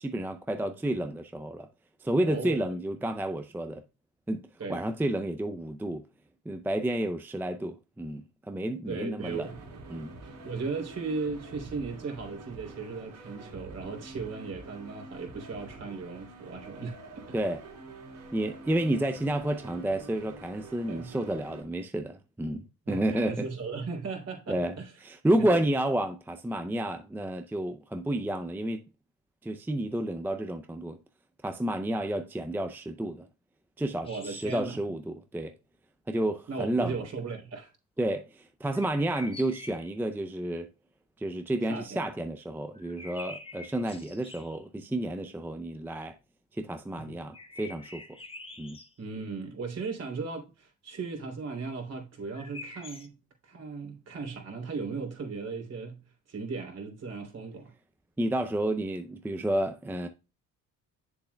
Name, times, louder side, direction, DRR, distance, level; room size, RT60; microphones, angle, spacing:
voice 1, 0.0-1.7 2.0-3.8 4.3-6.0 6.5-9.5 9.9-10.2 17.3-17.6 18.3-23.5 24.5-24.8 25.0-28.8 29.4-31.0 31.4-33.3 33.8-35.5 36.1-37.0 38.0-40.7 41.2-46.1 46.5-48.0 48.6-48.8 58.2-60.1, right 1 dB, 5° right, 0.5 m, -30 dB
voice 2, 2.2-2.6 4.6-4.8 8.9-9.6 10.2-17.2 20.9-21.1 22.8-24.9 25.4-25.7 34.0-34.8 36.5-37.7 41.7-42.1 47.0-47.1 49.0-53.2 53.4-56.0 56.3-57.7, right 4 dB, 45° right, 3.2 m, -37 dB
sound 1, 9.2-21.6, right 2 dB, 70° right, 3.3 m, -47 dB
sound 2, 34.0-34.8 38.7-40.0 42.7-44.6 47.3-48.9 52.3-53.1, left 2 dB, 15° left, 1.3 m, -46 dB
7.7 x 7.0 x 2.3 m
supercardioid pair, 85°, 34 cm